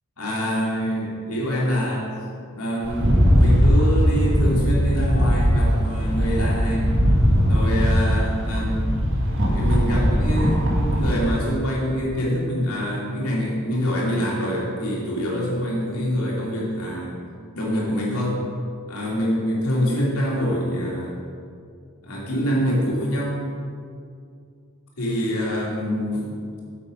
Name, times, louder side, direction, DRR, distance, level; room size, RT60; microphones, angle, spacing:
voice 1, 0.2-2.1 2.5-6.9 7.4-8.9 9.4-17.2 17.5-18.4 18.9-21.2 22.0-23.4 25.0-26.4, equal, 85° left, -4 dB, 2.7 m, -25 dB
Rattle, 2.8-11.3, equal, 60° right, 1.7 m, -19 dB
8.6 x 7.6 x 5.3 m, 2.3 s
head